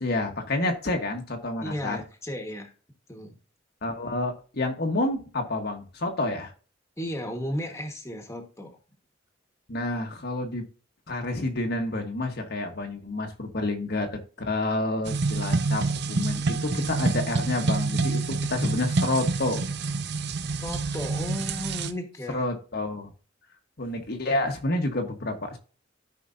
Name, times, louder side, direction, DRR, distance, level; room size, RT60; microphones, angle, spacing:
voice 1, 0.0-2.0 3.8-6.5 9.7-10.6 11.1-19.7 22.3-23.1 23.8-25.6, left 2 dB, 55° left, 3 dB, 1.3 m, -29 dB
voice 2, 1.6-2.7 3.1-3.3 7.0-8.8 20.6-22.4, left 1 dB, 15° left, 4 dB, 1.5 m, -34 dB
sound 1, 15.1-21.9, right 3 dB, 60° right, 0.7 m, -27 dB
13.0 x 5.1 x 2.7 m, 0.37 s
head